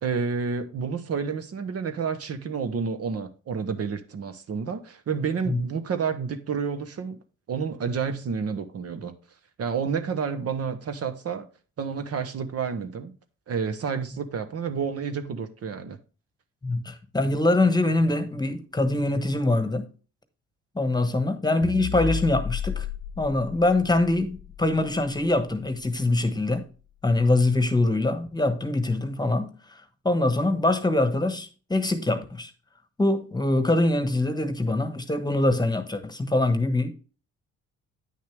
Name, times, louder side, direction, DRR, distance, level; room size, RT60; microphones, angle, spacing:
voice 1, 0.0-7.2 7.5-9.1 9.6-11.5 11.8-13.1 13.5-16.0, right 6 dB, 50° right, 1.0 m, -30 dB
voice 2, 16.6-19.9 20.7-22.9 23.2-26.7 27.0-32.5 33.0-36.9, left 2 dB, 15° left, 1.2 m, -24 dB
sound 1, 21.6-26.1, left 7 dB, 55° left, 0.8 m, -34 dB
9.2 x 6.5 x 3.3 m
cardioid pair, 90°, 30 cm